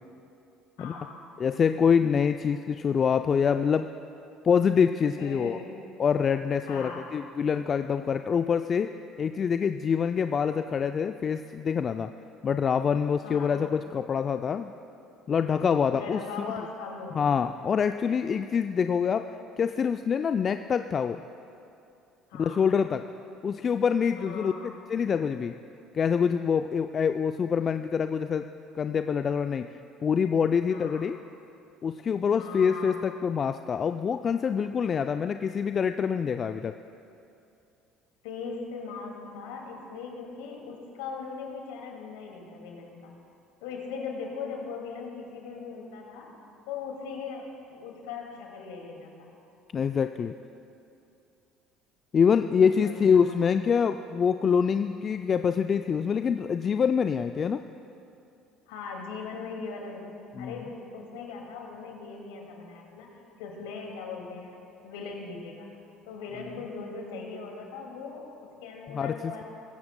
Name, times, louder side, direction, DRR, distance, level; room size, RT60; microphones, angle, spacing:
voice 1, 0.8-1.2 2.4-2.5 5.2-5.7 6.7-7.1 13.2-13.5 15.9-17.4 22.3-22.6 24.2-24.7 30.7-31.0 32.4-33.0 38.2-43.1 43.6-46.3 46.7-49.3 52.6-53.4 53.7-53.8 58.7-60.0 60.4-63.1 63.4-65.7 66.1-69.4, left 5 dB, 75° left, 0 dB, 2.2 m, -39 dB
voice 2, 1.4-3.9 4.4-5.6 6.0-8.9 9.2-12.1 12.4-14.7 15.3-16.5 17.1-19.2 19.6-21.2 22.3-23.0 23.4-25.5 25.9-28.5 28.8-29.7 30.0-31.2 31.8-36.7 49.7-50.3 52.1-57.6 60.4-60.6 68.9-69.1, left 6 dB, 40° left, 9 dB, 0.4 m, -25 dB
22.0 x 15.5 x 2.2 m, 2.6 s
hypercardioid pair, 60°, 0 cm